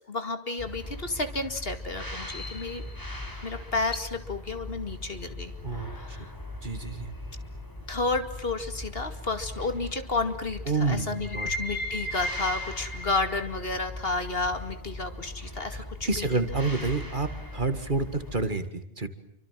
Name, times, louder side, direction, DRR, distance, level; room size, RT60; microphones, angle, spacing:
voice 1, 0.1-2.8 3.4-5.5 5.8-6.3 7.9-16.4, left 3 dB, 55° left, 8 dB, 2.6 m, -31 dB
sound 1, 0.6-18.5, left 1 dB, 15° left, 4.8 m, -38 dB
voice 2, 5.6-6.0 6.6-7.1 10.7-11.5 15.7-19.1, right 3 dB, 45° right, 9 dB, 2.1 m, -29 dB
28.5 x 25.0 x 7.6 m, 0.73 s
omnidirectional pair, 1.2 m